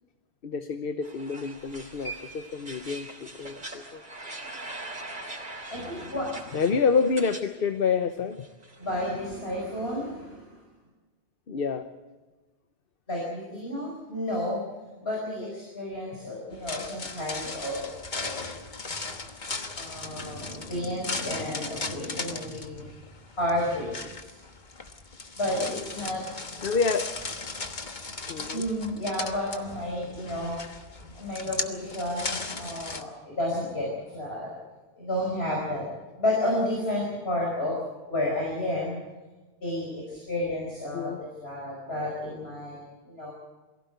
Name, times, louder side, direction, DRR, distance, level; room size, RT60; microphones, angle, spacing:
voice 1, 0.4-4.3 6.5-8.5 11.5-11.9 26.6-27.2 28.3-28.7 40.9-41.2, left 5 dB, 65° left, 9 dB, 1.1 m, -28 dB
sound 1, 1.0-7.5 7.7-9.0, right 2 dB, 50° right, 3.6 m, -41 dB
voice 2, 5.7-6.3 8.8-10.6 13.1-14.6 15.0-18.5 19.8-22.8 23.4-24.4 25.4-26.2 28.5-30.6 31.2-34.5 35.0-35.9 36.2-37.8 38.1-39.0 39.6-43.3, left 1 dB, 80° left, -2 dB, 5.4 m, -31 dB
sound 2, 16.5-33.0, left 3 dB, 50° left, 1.5 m, -37 dB
23.0 x 16.5 x 8.1 m, 1.2 s
omnidirectional pair, 1.0 m